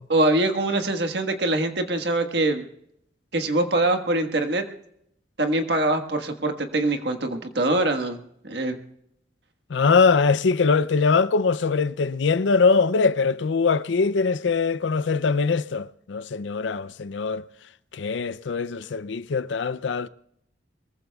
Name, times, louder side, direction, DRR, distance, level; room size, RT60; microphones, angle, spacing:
voice 1, 0.1-2.7 3.3-4.7 5.4-8.8, right 2 dB, 70° right, 1.5 m, -23 dB
voice 2, 9.7-17.5 17.9-20.1, left 4 dB, 85° left, 0.5 m, -22 dB
23.0 x 22.0 x 2.3 m
head